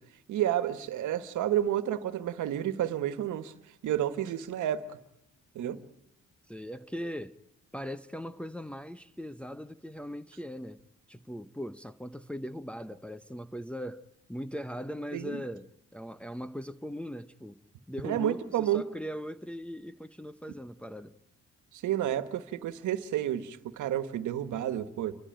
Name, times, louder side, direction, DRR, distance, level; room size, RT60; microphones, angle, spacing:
voice 1, 0.3-3.5 3.8-5.0 5.5-5.8 15.1-15.4 18.0-18.8 21.7-25.2, right 11 dB, 80° right, 1.5 m, -30 dB
voice 2, 6.5-7.4 7.7-10.8 11.1-17.6 17.9-21.1, equal, 5° left, 0.8 m, -40 dB
29.5 x 14.0 x 9.0 m
cardioid pair, 90°, 30 cm